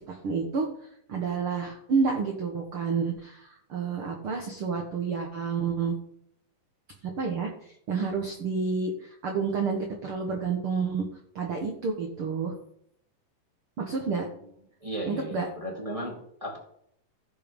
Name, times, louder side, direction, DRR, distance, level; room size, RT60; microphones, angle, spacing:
voice 1, 0.1-0.7 1.1-5.9 7.2-11.0 11.3-12.5 13.8-14.3 15.1-15.5, right 5 dB, 75° right, 3 dB, 1.2 m, -29 dB
voice 2, 14.8-16.6, right 1 dB, 15° right, -2 dB, 1.1 m, -35 dB
15.0 x 5.2 x 5.2 m, 0.70 s
omnidirectional pair, 4.3 m